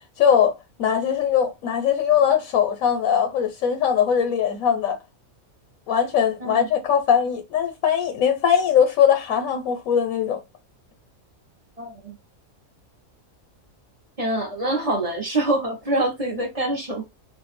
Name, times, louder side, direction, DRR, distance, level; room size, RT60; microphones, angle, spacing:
voice 1, 0.2-5.0 5.9-10.4, left 8 dB, 75° left, 1.1 m, -21 dB
voice 2, 11.8-12.2 14.2-17.1, right 1 dB, 30° right, 0.8 m, -25 dB
2.6 x 2.3 x 4.1 m
omnidirectional pair, 1.5 m